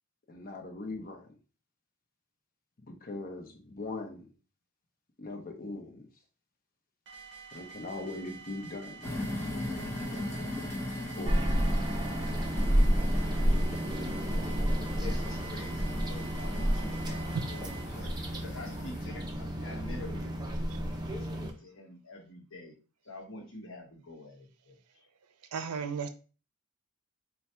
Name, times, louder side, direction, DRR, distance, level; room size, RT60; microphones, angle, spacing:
voice 1, 0.3-1.3 2.9-4.3 5.2-6.1 7.5-9.1 11.1-11.4, left 2 dB, 40° left, 0.7 m, -40 dB
sound 1, 7.1-17.8, right 5 dB, 55° right, 0.7 m, -48 dB
sound 2, 9.0-19.0, left 1 dB, 10° left, 0.9 m, -39 dB
sound 3, 11.2-21.5, equal, 20° right, 0.5 m, -30 dB
voice 2, 13.7-14.8 15.0-20.4 21.1-22.7 23.0-24.8, left 1 dB, 60° left, 1.0 m, -47 dB
voice 3, 17.3-17.7 18.3-18.4 20.7-21.4 25.5-26.1, right 5 dB, 85° right, 0.5 m, -37 dB
3.3 x 2.3 x 4.2 m
head